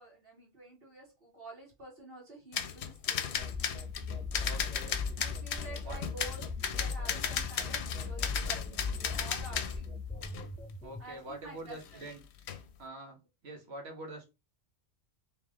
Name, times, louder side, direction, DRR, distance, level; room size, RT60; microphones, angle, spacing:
voice 1, 0.0-3.6 5.1-9.9 11.0-12.1, right 2 dB, 60° right, -2 dB, 2.0 m, -49 dB
sound 1, 2.5-9.8 10.2-10.5 11.8-12.1 12.4-12.7, left 8 dB, 80° left, 0.9 m, -36 dB
sound 2, 3.4-11.0, left 4 dB, 10° left, 0.4 m, -38 dB
voice 2, 4.4-5.0 5.8-6.0 10.8-12.2 12.8-13.2 13.4-14.3, right 2 dB, 75° right, 2 dB, 1.5 m, -45 dB
3.5 x 3.4 x 3.6 m, 0.26 s
omnidirectional pair, 1.1 m